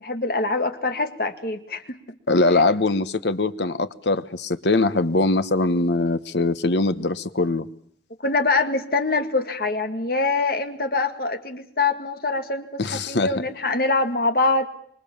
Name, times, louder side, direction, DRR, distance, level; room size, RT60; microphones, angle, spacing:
voice 1, 0.0-2.0 2.5-2.6 8.2-14.7, left 3 dB, 55° left, 2.0 m, -24 dB
voice 2, 2.3-7.7 12.8-13.3, left 2 dB, 80° left, 1.2 m, -22 dB
25.5 x 23.0 x 7.2 m
head